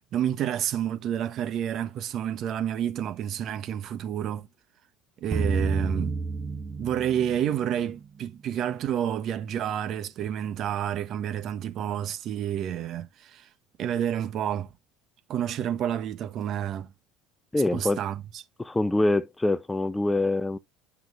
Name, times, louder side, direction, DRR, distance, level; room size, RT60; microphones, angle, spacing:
voice 1, 0.1-4.5 5.2-6.2 6.8-13.5 13.8-14.7 15.3-16.9 17.7-18.4, right 10 dB, 50° right, 1.2 m, -29 dB
sound 1, 5.3-7.7, right 4 dB, 30° right, 1.3 m, -29 dB
voice 2, 17.5-18.0 18.6-20.6, left 2 dB, 10° left, 0.6 m, -25 dB
11.0 x 5.9 x 2.5 m
hypercardioid pair, 65°, 0 cm